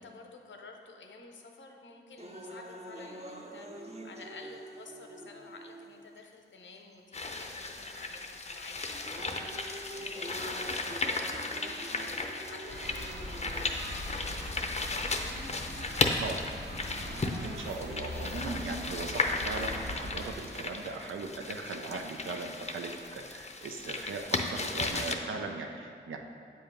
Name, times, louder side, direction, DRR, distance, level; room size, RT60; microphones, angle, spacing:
voice 1, 0.0-11.3 11.9-13.4 14.1-16.2, left 4 dB, 70° left, 3 dB, 0.7 m, -51 dB
sound 1, 2.2-6.2 6.9-7.0 7.9-8.2 8.7-14.2 15.2-15.3 16.7-18.2, right 1 dB, 30° right, 0.6 m, -46 dB
sound 2, 7.1-25.1, left 3 dB, 35° left, 0.6 m, -35 dB
sound 3, 12.7-20.3, left 1 dB, 60° right, 1.0 m, -41 dB
voice 2, 17.4-26.2, right 4 dB, 85° right, 3 dB, 0.6 m, -39 dB
7.6 x 2.8 x 5.1 m, 2.5 s
cardioid pair, 40°, 20 cm